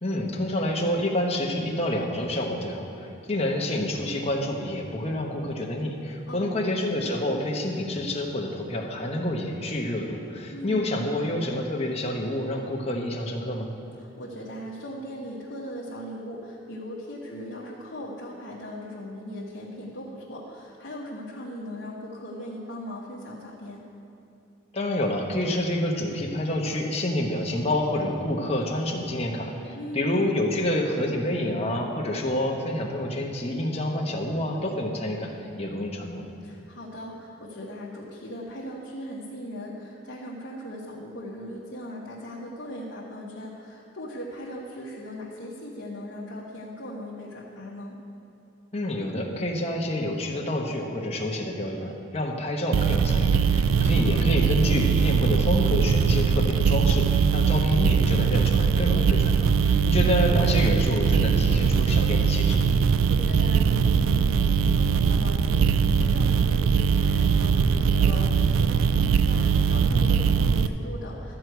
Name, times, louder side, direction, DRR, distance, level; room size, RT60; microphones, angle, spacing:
voice 1, 0.0-13.7 24.7-36.2 48.7-62.6, left 1 dB, 30° left, 0 dB, 1.0 m, -28 dB
voice 2, 6.3-6.7 10.5-10.9 14.0-23.8 29.7-30.3 36.4-48.0 53.8-54.4 59.7-60.1 62.8-71.3, equal, 60° left, -6 dB, 1.3 m, -38 dB
sound 1, 52.7-70.7, right 6 dB, 85° right, 0.3 m, -21 dB
13.0 x 4.7 x 8.0 m, 2.9 s
head